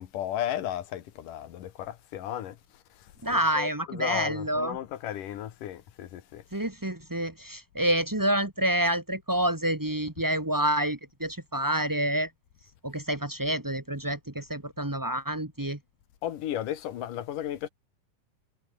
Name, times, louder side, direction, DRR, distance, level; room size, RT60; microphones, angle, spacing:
voice 1, 0.0-2.6 3.3-6.4 16.2-17.7, left 11 dB, 85° left, 3.1 m, -34 dB
voice 2, 3.2-4.8 6.5-12.3 12.8-15.8, right 1 dB, 20° right, 0.5 m, -28 dB
omnidirectional pair, 3.7 m